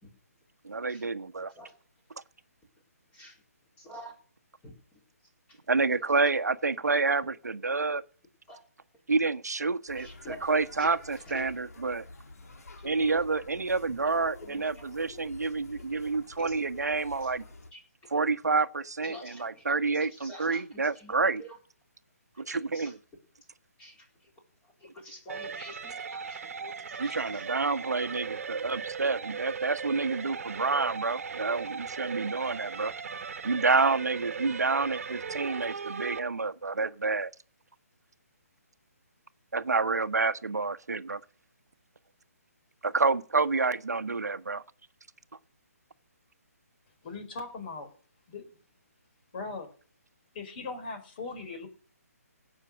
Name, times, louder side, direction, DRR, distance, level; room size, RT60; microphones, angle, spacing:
voice 1, 0.6-1.5 5.7-8.0 9.1-12.0 12.8-17.4 18.1-21.4 22.5-23.0 27.0-32.9 33.4-37.3 39.5-41.2 42.8-44.6, right 4 dB, 85° right, 1.2 m, -28 dB
voice 2, 3.1-3.4 3.8-4.2 4.6-5.6 8.5-8.6 10.0-10.5 10.8-11.6 12.8-13.2 14.4-14.8 16.4-16.6 17.2-17.3 17.7-18.1 19.0-21.6 22.4-22.9 23.8-24.3 24.6-27.6, equal, 15° left, 3.9 m, -49 dB
sound 1, 9.9-17.7, left 3 dB, 70° left, 2.4 m, -49 dB
sound 2, 25.3-36.2, right 6 dB, 60° right, 1.4 m, -38 dB
voice 3, 47.0-47.9 48.3-48.4 49.3-49.7 50.3-51.7, left 3 dB, 35° left, 4.6 m, -39 dB
16.5 x 6.4 x 6.4 m
hypercardioid pair, 150°, 9 cm